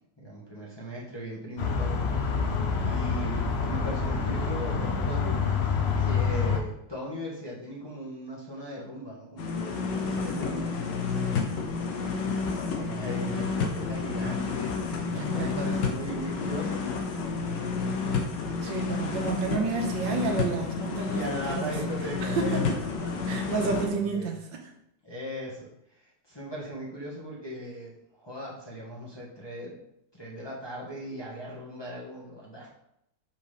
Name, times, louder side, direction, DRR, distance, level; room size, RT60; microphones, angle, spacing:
voice 1, 0.2-2.0 2.8-5.7 6.0-11.6 12.7-14.8 15.4-17.0 17.3-17.5 21.1-24.3 25.0-25.7 26.3-27.9 28.2-29.7 30.1-32.7, equal, 15° left, -5 dB, 1.4 m, -38 dB
sound 1, 1.6-6.6, left 5 dB, 55° left, 0.7 m, -27 dB
sound 2, 9.4-23.9, left 4 dB, 80° left, 1.6 m, -30 dB
voice 2, 15.1-15.7 18.6-21.8 22.2-22.8 23.3-24.7, right 4 dB, 85° right, 3 dB, 1.7 m, -31 dB
5.6 x 4.4 x 5.0 m, 0.80 s
omnidirectional pair, 1.9 m